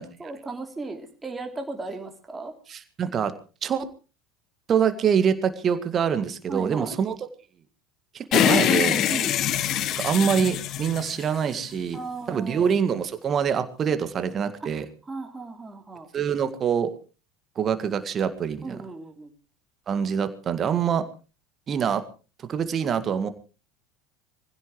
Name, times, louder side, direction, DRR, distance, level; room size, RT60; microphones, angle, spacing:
voice 1, 0.0-2.5 6.5-7.0 9.1-9.4 11.9-12.7 15.0-16.1 18.6-19.3, right 3 dB, 15° right, 3 dB, 3.1 m, -36 dB
voice 2, 2.7-3.3 3.6-3.9 4.7-7.1 8.1-9.0 9.9-12.0 12.3-14.9 16.1-16.9 17.6-18.8 19.9-21.0 21.7-22.0 22.5-23.3, right 7 dB, 35° right, 10 dB, 1.9 m, -25 dB
sound 1, 8.3-11.8, left 11 dB, 45° left, 1.1 m, -24 dB
24.5 x 16.0 x 3.1 m, 0.34 s
figure-of-eight pair, 75°, 0 cm